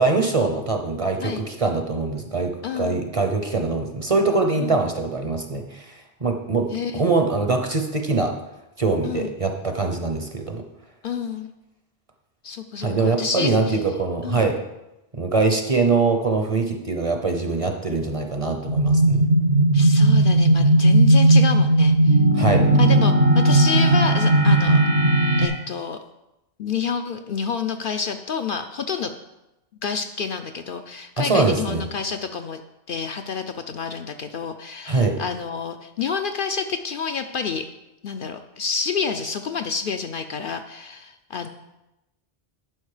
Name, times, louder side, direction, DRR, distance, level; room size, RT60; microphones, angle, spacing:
voice 1, 0.0-5.9 6.2-6.7 6.9-8.3 8.8-10.6 12.8-14.6 15.1-19.2 22.3-22.7 31.2-31.8 34.9-35.2, right 3 dB, 35° right, 5 dB, 0.7 m, -23 dB
voice 2, 2.6-3.0 4.6-4.8 6.7-7.0 9.0-9.3 11.0-11.5 12.4-13.8 14.2-14.4 19.7-22.2 22.7-24.8 25.4-26.0 26.6-29.1 29.8-32.6 32.9-37.7 38.0-41.5, left 6 dB, 60° left, 7 dB, 0.6 m, -29 dB
sound 1, 18.7-25.5, right 1 dB, 80° right, 1.9 m, -16 dB
11.0 x 5.2 x 4.9 m, 0.94 s
omnidirectional pair, 1.2 m